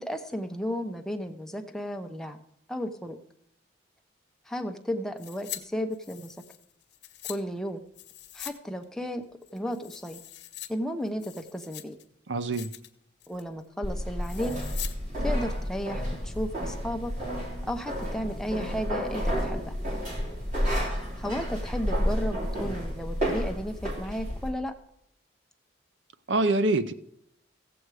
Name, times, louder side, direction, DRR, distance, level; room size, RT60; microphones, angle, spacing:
voice 1, 0.0-2.4 2.7-3.2 4.5-6.4 7.3-7.8 8.3-9.2 9.5-10.2 10.7-12.0 13.3-14.5 15.2-17.1 17.6-19.8 21.2-24.7, equal, 5° left, 4 dB, 0.8 m, -34 dB
sound 1, 5.2-5.6 5.9-7.4 7.9-8.6 8.8-8.9 9.4-10.7 11.1-12.0 12.4-12.9 13.2-13.5 14.2-14.9 15.2-15.3, left 14 dB, 65° left, 1.1 m, -42 dB
voice 2, 12.3-12.7 26.3-26.9, right 2 dB, 70° right, 13 dB, 0.7 m, -25 dB
sound 2, 13.8-24.5, equal, 40° right, 3.9 m, -31 dB
15.5 x 7.9 x 4.8 m, 0.73 s
head